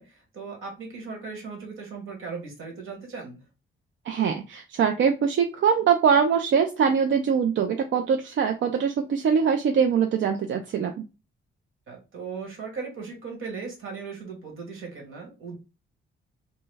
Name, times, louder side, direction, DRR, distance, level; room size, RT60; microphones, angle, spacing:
voice 1, 0.0-3.4 11.9-15.6, right 5 dB, 80° right, 1 dB, 1.6 m, -38 dB
voice 2, 4.1-10.9, right 7 dB, 65° right, 5 dB, 0.4 m, -23 dB
3.0 x 2.2 x 3.2 m, 0.29 s
cardioid pair, 90°, 21 cm